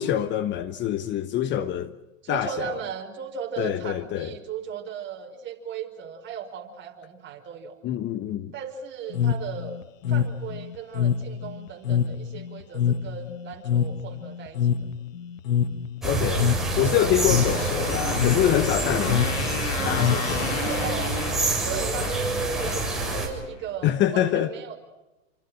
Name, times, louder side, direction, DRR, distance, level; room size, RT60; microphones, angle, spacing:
voice 1, 0.0-1.9 2.3-2.8 3.6-4.3 7.8-8.5 16.0-16.5 16.8-19.3 19.8-20.6 23.8-24.5, left 11 dB, 30° left, 1.2 m, -25 dB
voice 2, 2.2-7.8 8.5-9.8 10.1-14.7 20.7-21.2 21.6-24.8, right 7 dB, 30° right, 5.2 m, -37 dB
sound 1, 9.1-20.7, left 8 dB, 75° left, 1.4 m, -26 dB
sound 2, 16.0-23.3, right 2 dB, ahead, 7.4 m, -27 dB
Motorcycle, 17.1-23.6, left 5 dB, 45° left, 6.3 m, -34 dB
28.5 x 25.5 x 6.3 m
hypercardioid pair, 130°, 39 cm